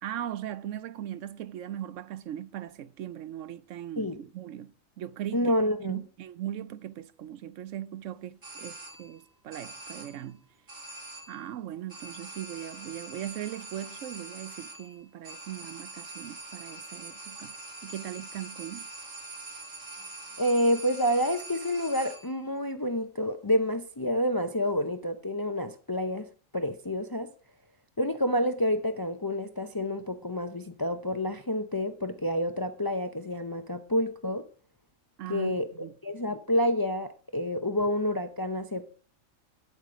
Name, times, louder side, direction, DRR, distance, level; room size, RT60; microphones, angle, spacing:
voice 1, 0.0-5.5 5.8-10.5 11.3-17.6 17.8-18.9 35.2-35.9, right 11 dB, 75° right, 0.9 m, -39 dB
voice 2, 5.3-6.0 20.4-26.3 26.5-27.3 28.0-34.4 35.3-35.7 36.0-38.8, equal, 30° left, 0.4 m, -28 dB
sound 1, 8.4-9.2 9.5-10.3 10.7-11.5 11.9-22.4, right 3 dB, 50° right, 2.1 m, -44 dB
9.3 x 7.2 x 5.0 m
omnidirectional pair, 1.3 m